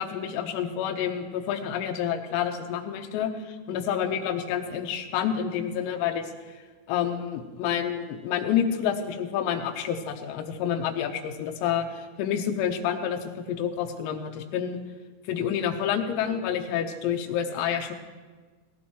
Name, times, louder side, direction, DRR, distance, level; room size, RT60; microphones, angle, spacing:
voice 1, 0.0-6.3 6.9-14.8 15.3-17.9, left 8 dB, 90° left, 4 dB, 3.6 m, -28 dB
18.5 x 17.5 x 3.0 m, 1.4 s
omnidirectional pair, 6.0 m